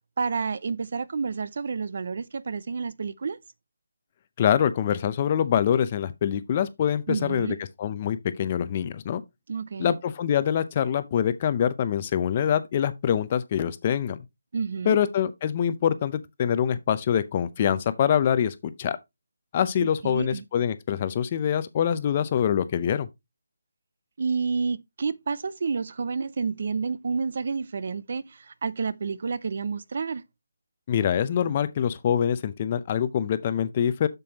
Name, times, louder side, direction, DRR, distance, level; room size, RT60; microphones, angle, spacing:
voice 1, 0.2-3.4 7.1-7.6 9.5-9.9 14.5-15.0 19.8-20.4 24.2-30.2, right 5 dB, 45° right, 0.4 m, -30 dB
voice 2, 4.4-9.2 9.8-14.2 14.8-19.0 19.5-23.1 30.9-34.1, left 9 dB, 25° left, 0.5 m, -25 dB
7.1 x 6.9 x 2.8 m
hypercardioid pair, 175°, 0 cm